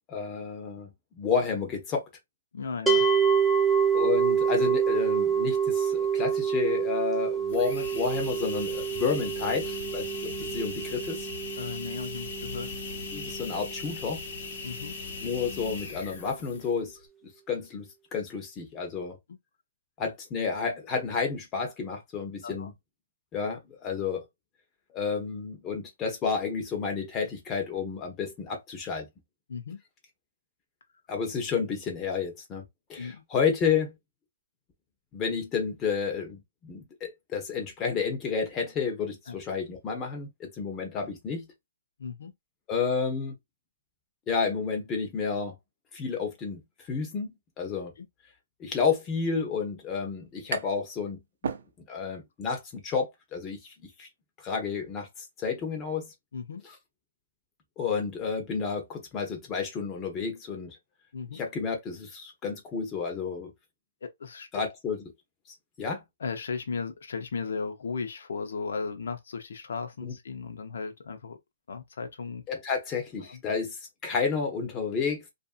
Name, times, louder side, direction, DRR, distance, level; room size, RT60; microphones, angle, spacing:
voice 1, 0.1-2.0 3.9-11.3 13.1-14.2 15.2-17.0 17.5-19.2 20.0-22.7 23.3-24.3 24.9-29.1 31.1-32.6 32.9-34.0 35.1-41.5 42.7-43.4 44.3-45.5 45.9-47.9 48.6-51.2 51.9-53.7 54.0-54.1 54.4-55.1 55.4-56.1 56.6-56.7 57.8-60.8 61.3-63.5 64.5-65.0 65.8-66.0 70.0-70.1 72.5-75.2, left 5 dB, 20° left, 0.9 m, -31 dB
voice 2, 2.5-3.1 11.6-12.7 14.6-14.9 22.4-22.7 29.5-29.8 33.0-33.2 39.3-39.4 42.0-42.3 48.0-48.1 56.3-56.6 61.1-61.4 64.0-64.5 66.2-71.4 71.7-72.4 73.3-73.4, left 5 dB, 75° left, 0.7 m, -36 dB
sound 1, 2.9-14.0, right 7 dB, 5° right, 0.4 m, -27 dB
sound 2, 7.5-16.9, left 4 dB, 50° left, 1.0 m, -39 dB
sound 3, 49.7-50.9 51.2-52.2, right 6 dB, 75° right, 0.5 m, -36 dB
2.6 x 2.5 x 2.4 m
hypercardioid pair, 155°, 0 cm